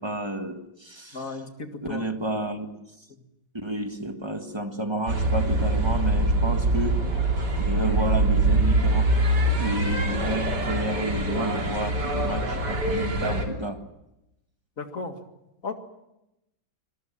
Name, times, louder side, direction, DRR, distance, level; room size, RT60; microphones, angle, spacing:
voice 1, 0.0-1.4 1.8-2.7 3.5-7.1 7.6-9.2 9.6-13.8, right 1 dB, 15° right, 6 dB, 1.5 m, -31 dB
voice 2, 1.1-2.0 14.8-15.2 15.6-15.7, left 3 dB, 45° left, 6 dB, 2.4 m, -34 dB
sound 1, 5.1-13.5, right 1 dB, 55° right, 3.7 m, -24 dB
25.5 x 20.5 x 7.4 m, 0.91 s
omnidirectional pair, 2.1 m